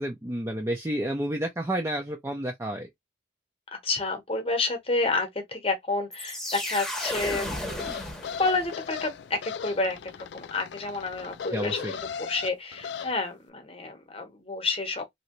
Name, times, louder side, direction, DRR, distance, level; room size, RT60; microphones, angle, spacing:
voice 1, 0.0-2.9 11.5-11.9, right 1 dB, 15° right, 0.5 m, -30 dB
voice 2, 3.7-8.0 8.3-15.1, left 3 dB, 35° left, 1.0 m, -30 dB
sound 1, 6.1-8.9, left 1 dB, 5° left, 0.9 m, -34 dB
sound 2, 7.7-13.1, left 7 dB, 75° left, 0.4 m, -37 dB
3.0 x 2.7 x 2.9 m
head